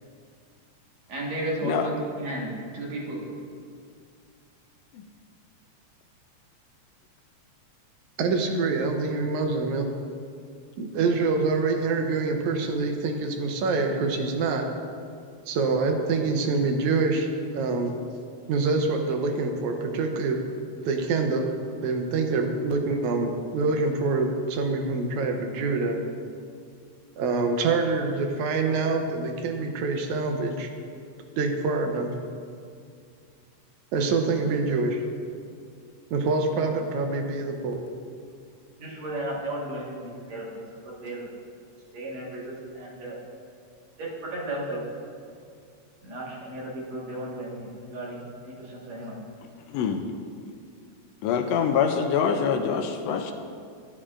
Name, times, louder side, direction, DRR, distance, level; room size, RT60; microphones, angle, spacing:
voice 1, 1.1-3.3 37.1-37.2 38.8-41.3 41.9-43.2 44.0-44.9 46.0-49.2, right 1 dB, 65° right, -4 dB, 2.7 m, -34 dB
voice 2, 8.2-9.9 10.8-14.7 15.5-18.0 18.5-20.4 20.8-21.5 21.8-26.0 27.2-30.7 31.4-32.1 33.9-35.0 36.1-37.8, right 3 dB, 80° right, 4 dB, 2.0 m, -25 dB
voice 3, 49.7-50.0 51.2-53.3, left 7 dB, 85° left, 5 dB, 1.4 m, -24 dB
11.5 x 9.8 x 2.5 m, 2.2 s
omnidirectional pair, 3.5 m